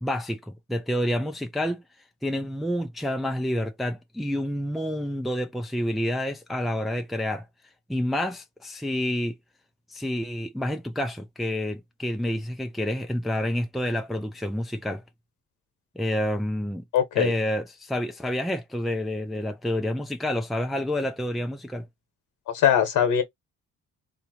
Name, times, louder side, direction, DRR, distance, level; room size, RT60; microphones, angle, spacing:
voice 1, 0.0-1.8 2.2-7.4 7.9-9.4 9.9-15.0 16.0-16.8 17.2-21.9, left 1 dB, ahead, 0.5 m, -28 dB
voice 2, 16.9-17.3 22.5-23.2, left 9 dB, 85° left, 1.3 m, -21 dB
3.7 x 2.9 x 2.9 m
cardioid pair, 90°, 30 cm